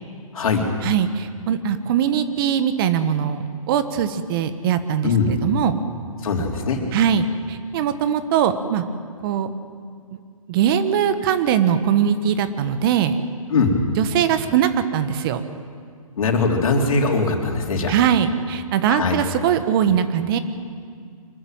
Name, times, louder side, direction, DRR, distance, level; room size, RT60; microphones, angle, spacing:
voice 1, 0.8-5.8 6.9-8.8 9.2-9.5 10.5-13.2 14.0-15.4 17.9-20.4, right 8 dB, 40° right, 11 dB, 1.3 m, -21 dB
voice 2, 6.2-6.8 13.5-13.8 16.2-17.9 18.9-19.2, left 4 dB, 70° left, 1 dB, 3.7 m, -21 dB
24.5 x 14.0 x 9.2 m, 2.1 s
hypercardioid pair, 135°, 18 cm